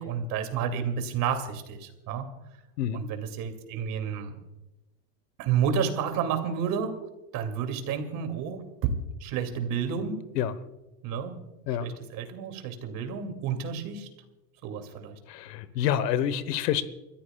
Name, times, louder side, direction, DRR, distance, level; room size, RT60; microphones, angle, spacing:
voice 1, 0.0-2.2 2.9-4.3 5.4-7.0 7.3-8.6 9.2-10.2 11.0-11.4 11.8-14.1 14.6-15.2, right 7 dB, 45° right, 6 dB, 2.5 m, -30 dB
voice 2, 15.3-16.8, left 10 dB, 85° left, 15 dB, 1.2 m, -27 dB
28.5 x 14.5 x 2.3 m, 1.0 s
supercardioid pair, 135°, 48 cm